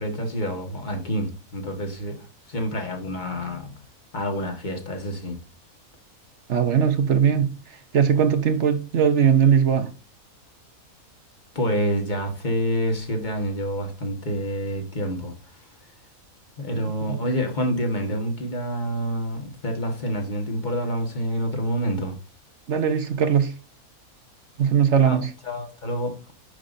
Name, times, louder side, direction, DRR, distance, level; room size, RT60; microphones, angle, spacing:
voice 1, 0.0-2.2 2.5-3.8 4.1-5.4 11.6-15.3 16.6-22.2 25.0-25.2 25.4-26.1, equal, 30° left, 1.7 m, -27 dB
voice 2, 6.5-7.5 7.9-9.9 17.0-17.2 22.7-23.5 24.6-25.3, right 7 dB, 55° right, 1.1 m, -19 dB
10.0 x 5.8 x 2.6 m
omnidirectional pair, 1.6 m